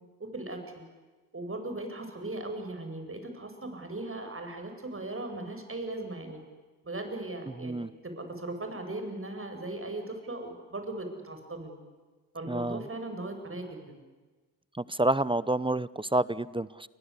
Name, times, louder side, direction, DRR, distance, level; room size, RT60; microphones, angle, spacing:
voice 1, 0.2-0.8 1.3-6.4 6.8-11.8 12.3-14.0, right 2 dB, 30° right, 5 dB, 7.9 m, -38 dB
voice 2, 12.5-12.8 14.8-16.9, right 1 dB, 10° right, 20 dB, 0.8 m, -28 dB
29.5 x 24.0 x 8.4 m, 1.3 s
hypercardioid pair, 40°, 46 cm